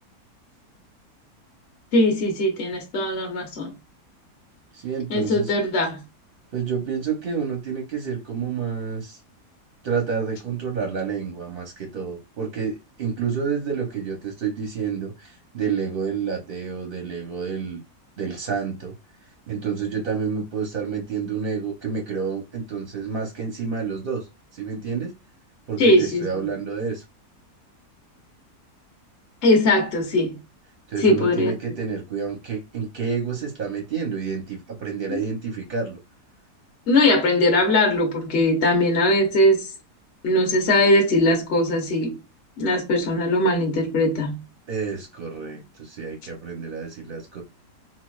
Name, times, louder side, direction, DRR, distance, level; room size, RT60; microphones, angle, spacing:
voice 1, 1.9-3.7 5.1-6.0 25.8-26.5 29.4-30.4 31.0-31.5 35.1-35.2 36.9-39.7 40.2-42.2 42.6-44.4, left 1 dB, 45° left, 0.9 m, -20 dB
voice 2, 4.7-5.5 6.5-9.2 9.8-17.8 18.2-18.9 19.5-24.3 24.5-25.2 25.7-27.0 30.9-36.0 44.7-47.4, right 6 dB, 55° right, 0.6 m, -29 dB
3.9 x 2.3 x 2.3 m
omnidirectional pair, 1.7 m